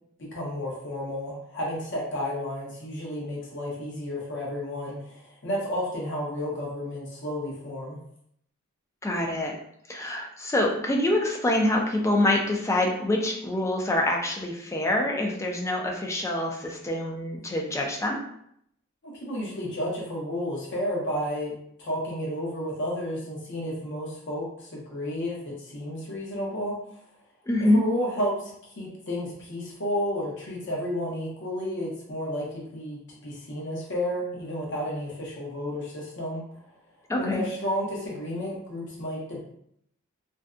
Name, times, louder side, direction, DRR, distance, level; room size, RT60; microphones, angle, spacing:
voice 1, 0.2-8.0 19.0-26.8 27.6-28.5 28.8-36.4 37.2-39.4, equal, 60° left, -4 dB, 0.8 m, -32 dB
voice 2, 9.0-9.5 9.9-18.2 27.5-27.8 37.1-37.4, left 1 dB, 15° left, 0 dB, 0.3 m, -25 dB
2.5 x 2.2 x 2.4 m, 0.72 s
head